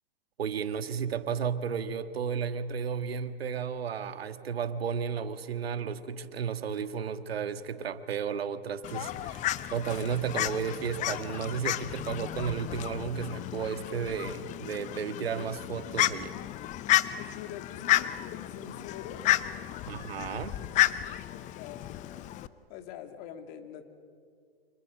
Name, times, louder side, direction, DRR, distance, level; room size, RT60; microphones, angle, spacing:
voice 1, 0.4-16.4 19.9-20.6, right 7 dB, 75° right, 10 dB, 1.7 m, -33 dB
Fowl, 8.8-22.5, left 14 dB, 25° left, 0.7 m, -32 dB
voice 2, 17.1-20.1 21.1-22.3 22.7-23.8, left 8 dB, 45° left, 6 dB, 2.8 m, -45 dB
30.0 x 27.0 x 6.5 m, 2.2 s
hypercardioid pair, 120°, 30 cm